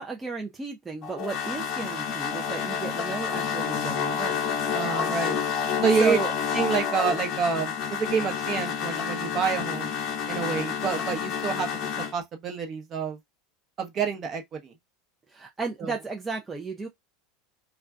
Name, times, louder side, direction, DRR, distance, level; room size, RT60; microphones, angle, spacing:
voice 1, 0.0-4.6 6.0-6.3 15.3-16.9, right 4 dB, 15° right, 0.5 m, -33 dB
sound 1, 1.0-12.1, left 7 dB, 45° left, 0.9 m, -29 dB
voice 2, 4.7-5.4 5.8-6.2 6.5-9.9 10.3-13.2 13.8-14.7 15.8-16.0, right 6 dB, 40° right, 0.9 m, -28 dB
2.3 x 2.2 x 3.5 m
hypercardioid pair, 85°, 0 cm